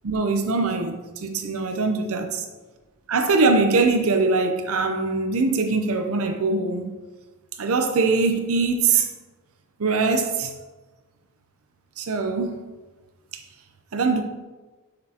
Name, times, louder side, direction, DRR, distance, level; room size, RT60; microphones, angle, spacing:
voice 1, 0.0-2.5 3.1-6.9 7.6-9.1 9.8-10.5 12.0-12.6 13.9-14.2, right 3 dB, 70° right, 6 dB, 0.6 m, -22 dB
7.5 x 6.8 x 2.9 m, 1.2 s
head